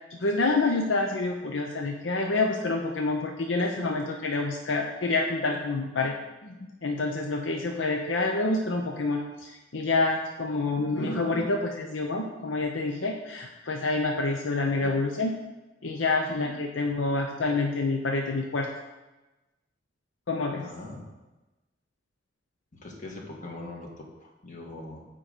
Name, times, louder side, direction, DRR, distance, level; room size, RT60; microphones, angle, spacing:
voice 1, 0.2-6.1 6.4-15.3 15.8-18.7 20.3-20.6, left 3 dB, 75° left, 2 dB, 0.7 m, -27 dB
voice 2, 20.6-21.0 22.7-25.1, left 2 dB, 40° left, -1 dB, 1.6 m, -41 dB
9.2 x 3.8 x 6.7 m, 1.1 s
head